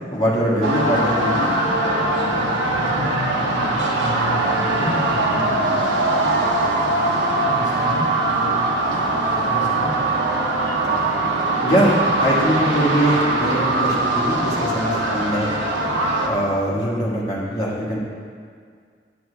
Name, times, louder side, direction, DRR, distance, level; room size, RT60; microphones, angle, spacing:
voice 1, 0.1-1.5 11.6-15.5 16.2-18.0, equal, 20° left, -6 dB, 1.8 m, -22 dB
sound 1, 0.6-16.3, right 2 dB, 90° right, 1.2 m, -21 dB
voice 2, 2.0-5.5 7.4-10.1, left 1 dB, 75° left, -2 dB, 0.9 m, -31 dB
10.5 x 8.3 x 3.4 m, 2.1 s
head